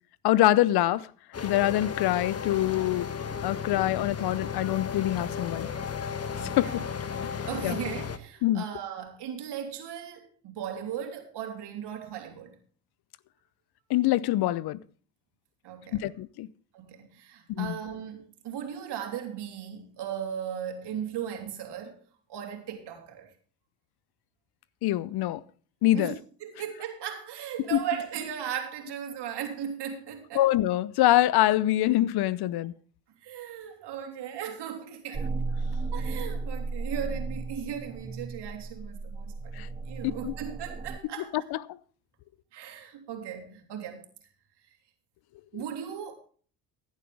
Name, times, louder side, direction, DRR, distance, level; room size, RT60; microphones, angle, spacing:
voice 1, 0.2-1.1 1.4-3.1 3.4-5.7 6.6-6.8 7.6-7.8 8.4-8.6 13.9-14.8 15.9-16.5 17.6-17.7 24.8-25.4 25.8-26.1 27.7-27.8 30.3-32.7 39.6-39.7 40.2-40.3 41.5-41.6, left 15 dB, 60° left, 0.7 m, -24 dB
sound 1, 1.3-8.2, left 6 dB, 35° left, 1.5 m, -34 dB
voice 2, 6.4-6.8 7.2-12.5 15.6-16.2 16.7-22.0 22.3-23.3 25.9-30.4 33.2-35.3 35.9-41.3 42.5-44.0 45.5-46.2, right 9 dB, 65° right, 3.2 m, -37 dB
sound 2, 35.1-41.0, right 3 dB, 15° right, 0.5 m, -34 dB
15.5 x 10.5 x 3.4 m
hypercardioid pair, 60°, 44 cm